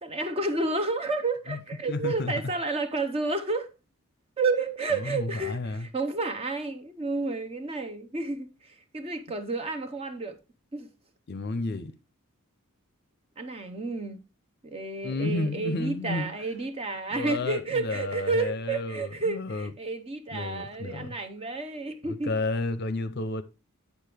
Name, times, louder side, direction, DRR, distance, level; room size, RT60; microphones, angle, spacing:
voice 1, 0.0-3.7 4.4-10.4 10.7-10.9 13.4-14.2 14.6-22.3, right 3 dB, 25° right, 0.7 m, -31 dB
voice 2, 1.9-2.3 4.9-5.9 11.3-11.9 15.0-16.3 17.1-19.7 20.3-21.2 22.0-23.4, left 2 dB, 45° left, 0.6 m, -31 dB
8.3 x 6.6 x 3.4 m
head